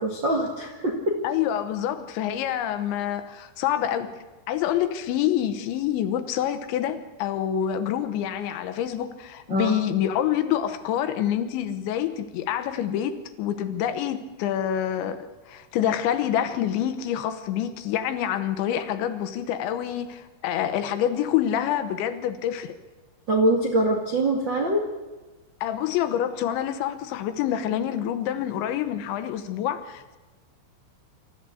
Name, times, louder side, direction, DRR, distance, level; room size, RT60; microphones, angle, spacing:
voice 1, 0.0-1.2 9.5-9.7 23.3-24.8, right 1 dB, 55° right, 0 dB, 1.3 m, -23 dB
voice 2, 1.2-22.7 25.6-30.2, left 10 dB, 75° left, 10 dB, 3.2 m, -27 dB
26.0 x 13.5 x 8.3 m, 1.2 s
omnidirectional pair, 5.6 m